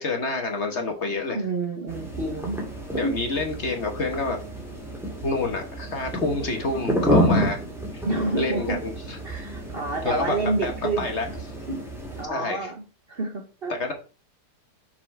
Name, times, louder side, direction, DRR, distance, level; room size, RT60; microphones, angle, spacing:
voice 1, 0.0-1.4 2.9-4.4 5.2-7.6 7.9-8.0 8.4-9.2 10.0-10.4 10.6-10.7 11.0-11.3 12.3-12.7 13.7-13.9, left 3 dB, 45° left, 4 dB, 1.4 m, -28 dB
voice 2, 1.3-2.6 3.0-3.1 8.0-8.8 9.2-11.1 11.7-11.8 12.2-12.8 13.1-13.9, right 2 dB, 40° right, 3 dB, 1.2 m, -28 dB
sound 1, 1.9-12.2, equal, ahead, 2.1 m, -29 dB
6.8 x 4.5 x 4.6 m, 0.35 s
omnidirectional pair, 1.7 m